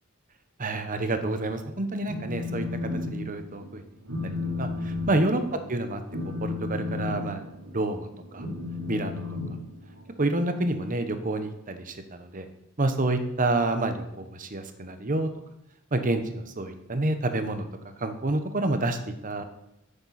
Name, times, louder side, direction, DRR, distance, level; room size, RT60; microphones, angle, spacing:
voice 1, 0.6-3.8 4.2-5.4 5.7-7.4 7.7-8.1 8.3-8.5 8.9-9.2 10.2-12.5 12.8-15.3 15.9-17.7 18.0-19.4, right 2 dB, 40° right, 8 dB, 1.0 m, -28 dB
Telephone, 2.1-3.1 3.4-3.7 4.0-10.2, left 3 dB, 85° right, 4.1 m, -33 dB
10.5 x 8.7 x 4.3 m, 0.86 s
head